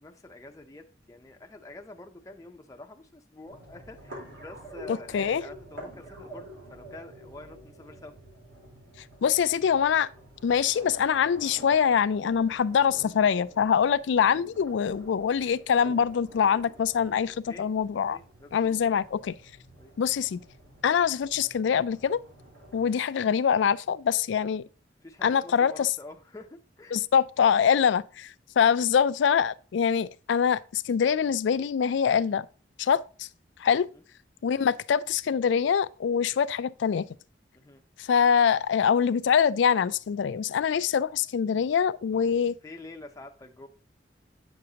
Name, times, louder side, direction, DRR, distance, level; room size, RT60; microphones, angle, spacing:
voice 1, 0.0-8.1 17.4-17.7 18.1-18.9 19.8-19.9 22.7-23.0 25.0-27.0 33.9-34.0 34.4-34.6 36.2-36.3 37.5-37.8 42.1-42.3 42.6-43.7, left 2 dB, 20° left, 0.5 m, -47 dB
sound 1, 3.4-22.9, right 1 dB, 85° right, 3.7 m, -49 dB
voice 2, 4.9-5.4 9.2-10.1 10.4-18.2 18.5-19.4 20.0-20.4 20.8-22.2 22.7-24.6 25.2-25.9 26.9-32.5 32.8-33.3 33.6-33.9 34.4-37.1 38.0-42.6, left 7 dB, 80° left, 0.3 m, -24 dB
8.6 x 6.3 x 2.8 m
head